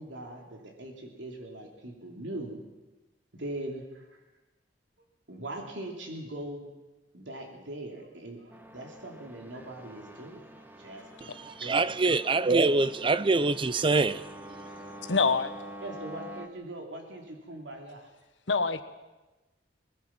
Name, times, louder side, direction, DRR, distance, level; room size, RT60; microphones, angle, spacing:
voice 1, 0.0-2.6 3.3-4.2 5.3-6.7 7.1-11.8 15.8-18.1, right 1 dB, 80° right, 3.0 m, -41 dB
sound 1, 8.5-16.5, right 1 dB, 10° right, 1.3 m, -47 dB
voice 2, 11.4-14.2, right 3 dB, 30° right, 0.6 m, -24 dB
voice 3, 15.1-15.5 18.5-18.8, left 4 dB, 85° left, 1.2 m, -24 dB
22.5 x 20.5 x 6.0 m
head